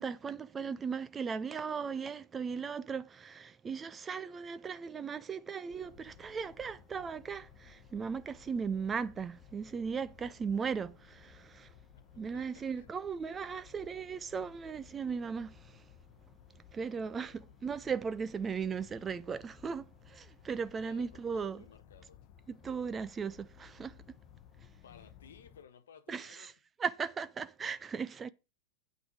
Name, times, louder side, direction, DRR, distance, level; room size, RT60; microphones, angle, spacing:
voice 1, 0.0-11.7 12.2-15.8 16.7-21.6 22.5-24.0 26.1-26.5 26.8-28.3, right 6 dB, 20° right, 0.5 m, -37 dB
sound 1, 5.7-25.6, left 9 dB, 40° left, 0.9 m, -58 dB
voice 2, 11.9-12.9 16.8-17.8 20.8-22.2 24.7-26.5, left 7 dB, 65° left, 1.3 m, -57 dB
8.7 x 6.1 x 4.8 m
figure-of-eight pair, 90°, 0 cm